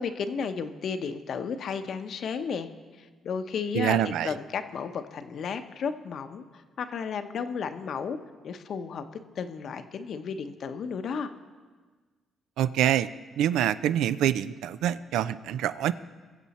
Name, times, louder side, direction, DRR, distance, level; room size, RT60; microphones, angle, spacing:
voice 1, 0.0-2.7 3.0-4.0 4.2-6.4 6.8-8.2 8.4-9.0 9.4-11.3, left 6 dB, 60° left, 8 dB, 0.8 m, -33 dB
voice 2, 3.7-4.3 12.6-13.1 13.4-15.9, right 11 dB, 85° right, 14 dB, 0.4 m, -25 dB
22.0 x 7.4 x 4.2 m, 1.4 s
cardioid pair, 90°, 0 cm